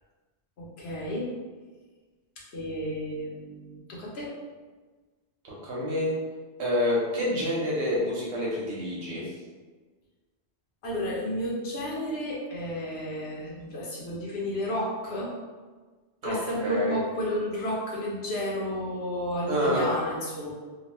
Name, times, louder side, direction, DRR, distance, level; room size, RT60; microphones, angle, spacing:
voice 1, 0.6-1.3 2.5-4.3 10.8-15.3 16.2-20.5, equal, 70° left, -4 dB, 1.0 m, -32 dB
voice 2, 5.4-6.1 6.6-9.2 16.2-17.0 19.5-19.9, left 1 dB, 85° right, -5 dB, 1.1 m, -28 dB
2.8 x 2.2 x 2.9 m, 1.4 s
omnidirectional pair, 1.1 m